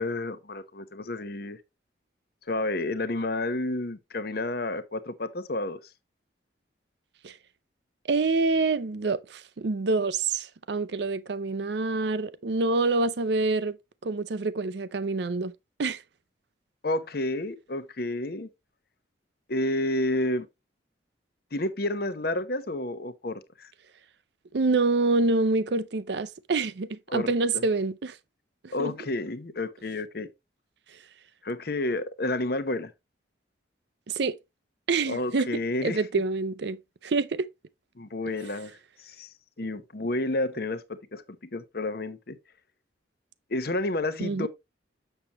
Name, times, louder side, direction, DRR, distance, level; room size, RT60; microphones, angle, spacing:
voice 1, 0.0-1.6 2.5-5.8 16.8-18.5 19.5-20.5 21.5-23.7 27.1-27.6 28.7-30.3 31.4-32.9 35.0-36.0 38.0-42.4 43.5-44.5, left 2 dB, 50° left, 0.8 m, -30 dB
voice 2, 8.1-13.8 14.0-15.5 15.8-16.0 24.5-28.2 28.6-28.9 34.1-34.4 34.9-36.8 37.0-37.5 44.2-44.5, right 3 dB, 65° right, 0.5 m, -26 dB
7.2 x 6.8 x 3.0 m
head